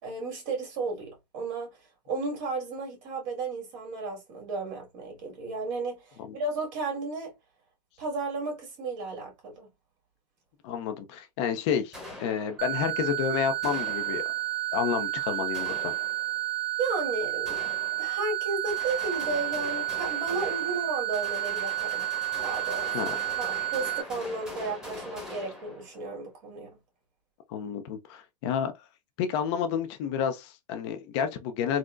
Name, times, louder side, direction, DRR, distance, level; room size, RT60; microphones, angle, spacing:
voice 1, 0.0-1.7 2.1-7.3 8.0-9.7 16.8-17.6 18.0-22.1 22.4-26.8, right 3 dB, 55° right, 1.8 m, -34 dB
voice 2, 10.6-11.9 12.2-14.2 14.7-15.9 22.9-23.1 27.5-28.7 29.2-31.8, left 8 dB, 40° left, 0.5 m, -30 dB
sound 1, 11.9-12.9 13.6-14.6 15.5-16.5 17.5-18.4 18.7-26.2, left 1 dB, 5° right, 1.2 m, -42 dB
sound 2, 12.6-24.0, right 14 dB, 75° right, 0.8 m, -31 dB
3.7 x 2.1 x 2.4 m
hypercardioid pair, 130°, 21 cm